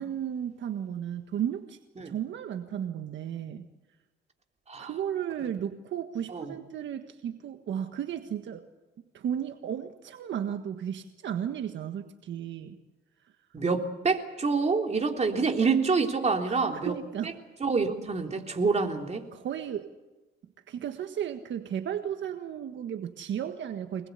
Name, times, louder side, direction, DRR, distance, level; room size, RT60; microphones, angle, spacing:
voice 1, 0.0-1.8 2.0-3.7 4.8-8.6 9.1-12.8 16.4-17.3 19.3-19.9 20.7-24.1, right 9 dB, 70° right, 7 dB, 1.6 m, -34 dB
voice 2, 13.5-16.9 17.6-19.2, right 4 dB, 35° right, 4 dB, 3.5 m, -27 dB
25.5 x 20.5 x 8.3 m, 1.1 s
cardioid pair, 90°, 20 cm